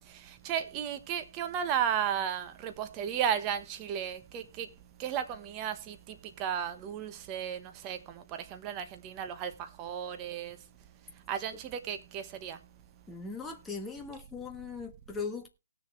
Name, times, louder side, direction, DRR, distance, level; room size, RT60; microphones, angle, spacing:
voice 1, 0.1-4.7 5.0-10.6 11.3-12.6, right 9 dB, 20° right, 1.0 m, -34 dB
voice 2, 13.1-15.5, left 4 dB, 5° left, 1.2 m, -39 dB
18.5 x 6.6 x 3.1 m
hypercardioid pair, 155°, 0 cm